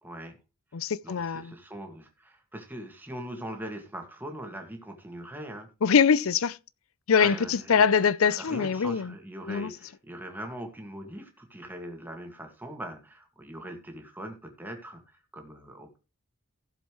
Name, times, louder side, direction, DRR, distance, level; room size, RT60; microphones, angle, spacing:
voice 1, 0.0-0.4 1.0-5.7 7.2-7.9 8.2-16.0, right 1 dB, 10° right, 2.0 m, -41 dB
voice 2, 0.7-1.5 5.8-6.6 7.1-9.1 9.5-9.7, left 6 dB, 75° left, 0.5 m, -23 dB
16.0 x 7.2 x 3.1 m
head